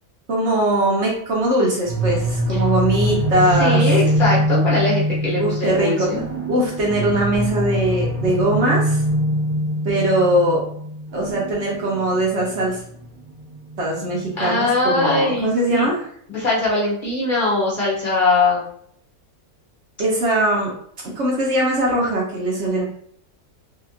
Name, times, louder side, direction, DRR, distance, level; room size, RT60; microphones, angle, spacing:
voice 1, 0.3-3.9 5.4-6.1 6.5-9.0 9.8-10.6 11.1-12.8 13.8-16.1 20.0-20.7 21.0-22.8, right 1 dB, 60° right, -3 dB, 0.9 m, -21 dB
sound 1, 1.9-14.6, equal, 90° right, 1.0 m, -23 dB
voice 2, 3.5-6.3 14.3-15.9 16.3-18.6, left 2 dB, 40° left, -7 dB, 1.0 m, -21 dB
2.8 x 2.7 x 2.4 m, 0.66 s
omnidirectional pair, 1.4 m